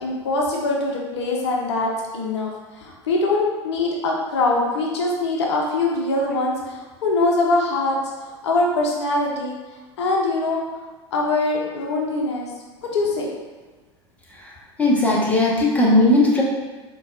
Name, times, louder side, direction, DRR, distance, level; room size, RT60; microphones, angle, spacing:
voice 1, 0.0-8.0 8.4-9.5 10.0-10.6 11.1-12.5 12.8-13.3, left 2 dB, 65° left, -2 dB, 0.6 m, -23 dB
voice 2, 14.8-16.4, left 2 dB, 10° left, -4 dB, 0.7 m, -17 dB
3.9 x 2.2 x 2.5 m, 1.3 s
figure-of-eight pair, 85°, 15 cm